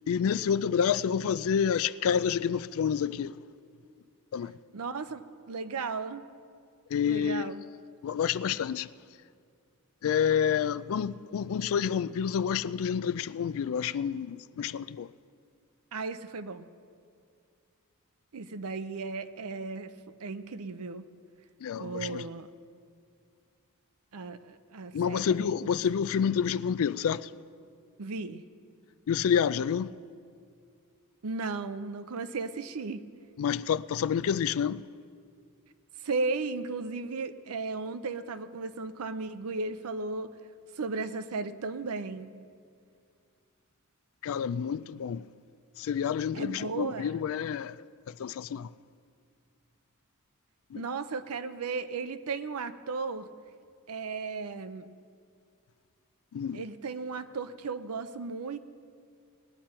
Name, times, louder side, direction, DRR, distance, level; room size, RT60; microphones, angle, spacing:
voice 1, 0.1-3.4 4.3-4.5 6.9-7.5 8.0-8.9 10.0-15.1 21.6-22.3 24.9-27.3 29.1-29.9 33.4-34.9 44.2-45.3 45.8-48.7 50.7-50.9 56.3-56.6, left 7 dB, 65° left, 0.3 m, -29 dB
voice 2, 4.7-6.2 7.0-7.6 15.9-16.7 18.3-19.9 20.2-21.1 21.8-22.5 24.1-25.5 28.0-28.4 31.2-33.0 36.0-40.3 40.8-42.3 46.3-47.2 50.7-53.3 53.9-54.9 56.5-58.6, right 4 dB, 80° right, 0.6 m, -35 dB
19.5 x 10.0 x 4.4 m
head